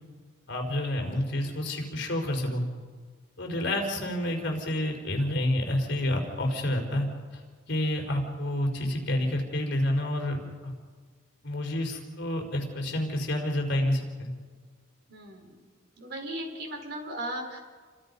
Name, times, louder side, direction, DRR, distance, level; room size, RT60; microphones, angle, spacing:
voice 1, 0.5-2.6 3.4-7.1 7.7-10.7 11.4-14.3, left 1 dB, 55° left, 2 dB, 4.6 m, -29 dB
voice 2, 15.1-15.6 16.0-17.6, right 1 dB, 55° right, 2 dB, 5.0 m, -37 dB
30.0 x 25.0 x 5.5 m, 1.5 s
head